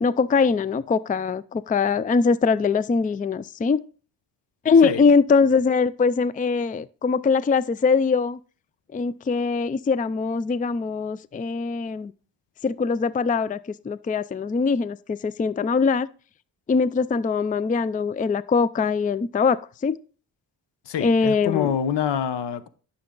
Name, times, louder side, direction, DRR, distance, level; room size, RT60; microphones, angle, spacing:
voice 1, 0.0-3.8 4.6-8.4 8.9-12.1 12.6-13.6 13.8-16.1 16.7-20.0 21.0-21.7, left 5 dB, 20° left, 0.4 m, -22 dB
voice 2, 20.8-22.7, left 8 dB, 75° left, 1.1 m, -26 dB
12.0 x 6.7 x 3.8 m
cardioid pair, 75°, 43 cm